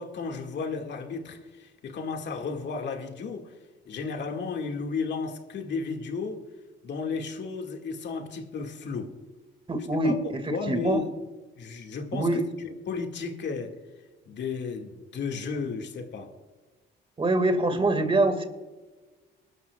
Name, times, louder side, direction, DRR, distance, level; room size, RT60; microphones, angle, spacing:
voice 1, 0.0-3.5 3.9-6.4 6.8-9.1 10.0-11.1 11.6-13.8 14.3-16.3 17.7-17.9, left 4 dB, 60° left, 2.0 m, -33 dB
voice 2, 9.7-11.0 12.1-12.4 17.2-18.5, right 2 dB, 25° right, 2.0 m, -24 dB
22.0 x 12.0 x 2.4 m
cardioid pair, 90°, 20 cm